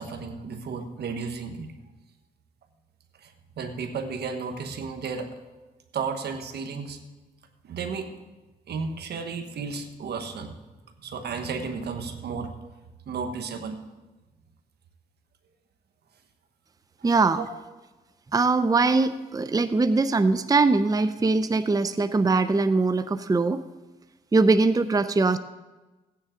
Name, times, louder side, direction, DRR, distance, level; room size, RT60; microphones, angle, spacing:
voice 1, 0.0-1.7 3.2-5.4 5.9-7.0 7.6-8.2 8.7-10.6 11.0-12.6 13.1-13.8 17.0-17.5, right 5 dB, 75° right, 7 dB, 1.4 m, -33 dB
voice 2, 17.0-17.4 18.3-23.6 24.3-25.4, right 3 dB, 20° right, 12 dB, 0.6 m, -22 dB
16.0 x 9.5 x 3.8 m, 1.1 s
cardioid pair, 60°, 17 cm